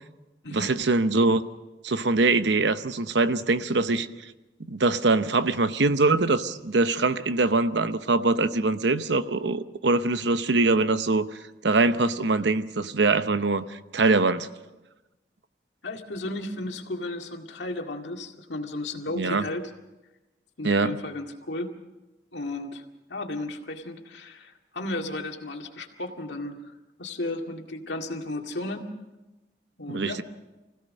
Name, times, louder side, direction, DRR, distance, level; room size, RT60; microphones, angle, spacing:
voice 1, 0.5-1.4 1.8-4.1 4.7-14.5 19.2-19.4 20.6-21.0 29.9-30.2, right 3 dB, 85° right, 0.9 m, -23 dB
voice 2, 15.8-19.6 20.6-21.7 22.3-26.7 27.0-28.9 29.8-30.2, left 2 dB, 85° left, 2.1 m, -34 dB
25.0 x 16.5 x 6.4 m
head